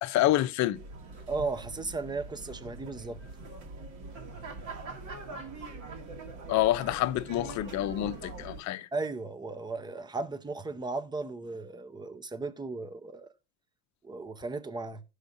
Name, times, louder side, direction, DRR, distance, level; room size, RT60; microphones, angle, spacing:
voice 1, 0.0-0.8 6.5-8.9, left 14 dB, 50° left, 0.7 m, -27 dB
sound 1, 0.7-8.6, right 3 dB, 50° right, 2.0 m, -43 dB
voice 2, 1.3-3.2 8.9-13.3 14.0-15.0, right 3 dB, 10° right, 0.7 m, -36 dB
16.0 x 6.4 x 2.6 m
supercardioid pair, 110°, 36 cm